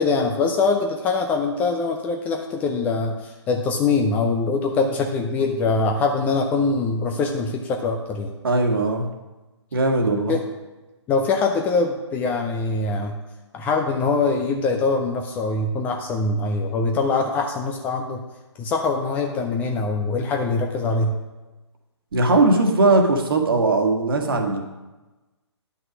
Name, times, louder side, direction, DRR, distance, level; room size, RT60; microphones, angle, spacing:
voice 1, 0.0-8.3 10.3-10.4 11.1-13.2 13.5-18.2 18.6-21.2, left 3 dB, 10° left, 3 dB, 0.5 m, -23 dB
voice 2, 8.4-9.1 9.7-10.3 22.1-24.6, right 2 dB, 50° right, 4 dB, 1.6 m, -19 dB
10.5 x 5.9 x 6.2 m, 1.1 s
figure-of-eight pair, 135°, 15 cm